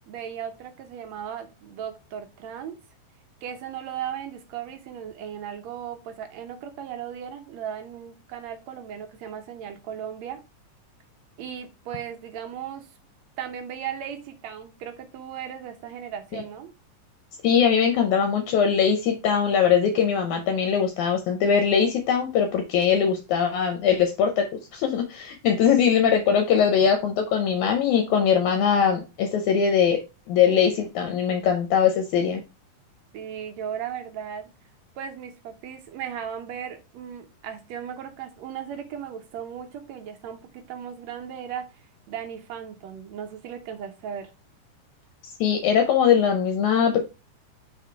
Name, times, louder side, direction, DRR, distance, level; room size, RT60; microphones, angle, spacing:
voice 1, 0.1-2.8 3.4-10.4 11.4-12.9 13.4-16.7 33.1-34.5 35.0-44.3, right 8 dB, 70° right, 6 dB, 1.8 m, -36 dB
voice 2, 17.4-30.0 30.3-32.4 45.4-47.0, left 7 dB, 75° left, 5 dB, 2.0 m, -21 dB
5.2 x 4.2 x 4.6 m, 0.27 s
omnidirectional pair, 3.8 m